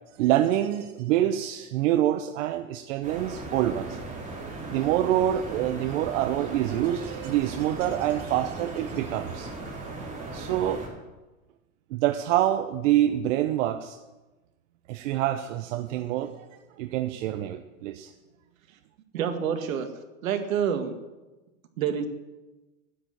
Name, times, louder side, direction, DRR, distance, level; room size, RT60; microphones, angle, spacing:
voice 1, 0.2-4.0 4.7-9.5 10.3-10.8 11.9-14.0 14.9-16.5 16.8-18.1, right 12 dB, 65° right, 7 dB, 1.0 m, -26 dB
sound 1, 3.0-10.9, right 2 dB, 20° right, 4.1 m, -37 dB
voice 2, 19.1-19.9 20.2-21.0 21.8-22.1, right 8 dB, 80° right, 7 dB, 1.9 m, -27 dB
10.0 x 8.9 x 9.0 m, 1.1 s
supercardioid pair, 120°, 40 cm